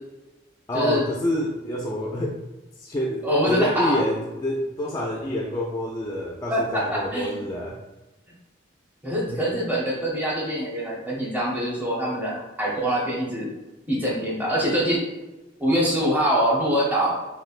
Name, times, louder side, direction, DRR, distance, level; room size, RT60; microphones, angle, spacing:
voice 1, 0.7-2.4 2.8-7.8 9.3-9.4, equal, 20° left, -2 dB, 0.3 m, -27 dB
voice 2, 3.2-4.0 6.5-7.4 9.0-13.5 13.9-15.0 15.6-17.2, equal, 10° right, -5 dB, 0.8 m, -24 dB
3.2 x 2.8 x 2.4 m, 1.0 s
head